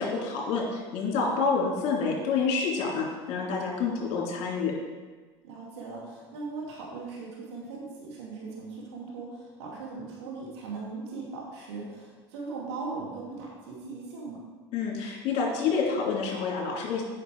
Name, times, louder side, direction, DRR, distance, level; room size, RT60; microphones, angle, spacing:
voice 1, 0.0-4.7 14.7-17.0, left 5 dB, 55° left, -2 dB, 2.8 m, -28 dB
voice 2, 5.4-14.4, right 4 dB, 80° right, -3 dB, 2.2 m, -39 dB
9.4 x 5.3 x 4.8 m, 1.4 s
hypercardioid pair, 90°, 14 cm